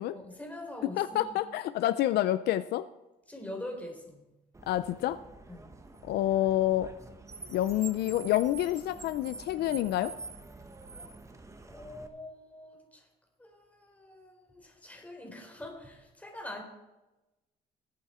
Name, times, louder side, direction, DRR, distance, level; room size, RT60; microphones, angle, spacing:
voice 1, 0.1-1.4 3.3-4.3 5.5-5.7 11.7-13.1 13.4-16.6, left 1 dB, 10° left, 2 dB, 3.7 m, -44 dB
voice 2, 1.0-2.8 4.7-5.2 6.0-6.9 7.5-10.1, left 13 dB, 75° left, 13 dB, 0.5 m, -28 dB
Car, 4.5-12.1, right 3 dB, 15° right, 1.3 m, -46 dB
20.0 x 8.5 x 4.4 m, 1.0 s
cardioid pair, 110°, 17 cm